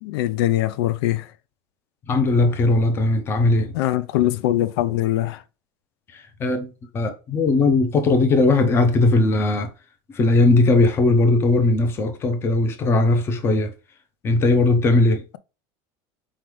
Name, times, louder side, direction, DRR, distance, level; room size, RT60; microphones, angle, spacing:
voice 1, 0.0-1.3 3.7-5.4, left 14 dB, 85° left, 0.5 m, -22 dB
voice 2, 2.1-3.8 6.1-9.7 10.1-13.7 14.2-15.2, left 2 dB, 20° left, 0.6 m, -19 dB
4.4 x 3.9 x 3.1 m
cardioid pair, 180°, 12 cm